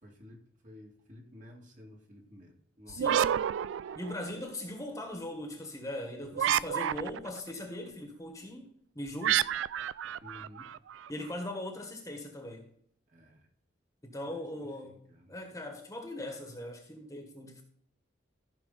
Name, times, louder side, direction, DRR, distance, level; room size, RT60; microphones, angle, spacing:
voice 1, 0.0-3.2 6.2-6.5 10.2-10.7 13.1-13.5 14.2-15.3, left 1 dB, 40° right, 2.3 m, -53 dB
voice 2, 2.9-3.3 3.9-9.4 11.1-12.6 14.0-15.0 15.3-17.6, left 1 dB, 15° left, 1.4 m, -40 dB
sound 1, 2.9-4.5 6.3-7.4 9.2-11.1, right 10 dB, 90° right, 0.3 m, -30 dB
14.5 x 6.1 x 4.0 m
head